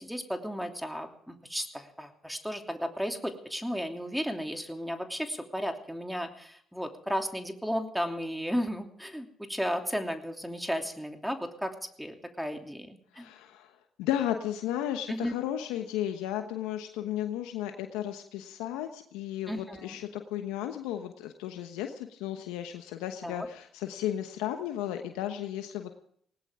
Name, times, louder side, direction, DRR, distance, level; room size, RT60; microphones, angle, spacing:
voice 1, 0.0-13.3 15.1-15.4 19.5-20.0 23.2-23.5, equal, ahead, 4 dB, 2.9 m, -34 dB
voice 2, 13.1-25.9, left 11 dB, 85° left, 6 dB, 1.1 m, -34 dB
19.5 x 18.5 x 3.7 m, 0.65 s
hypercardioid pair, 55°, 0 cm